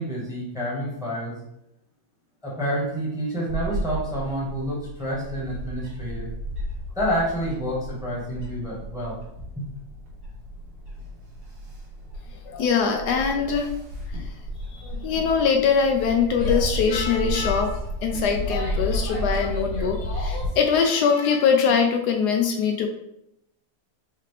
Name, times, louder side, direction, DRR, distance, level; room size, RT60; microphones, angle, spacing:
voice 1, 0.0-1.3 2.4-6.3 6.9-9.2 9.6-9.7, equal, ahead, -5 dB, 1.1 m, -28 dB
Bird / Wind, 3.5-20.5, equal, 70° right, 1.9 m, -32 dB
voice 2, 12.5-13.7 14.1-14.3 14.7-22.9, left 6 dB, 75° left, 3 dB, 1.1 m, -22 dB
Female speech woman speaking / Yell, 16.3-20.6, left 1 dB, 60° left, 1.4 m, -38 dB
4.9 x 2.8 x 3.2 m, 0.79 s
omnidirectional pair, 1.8 m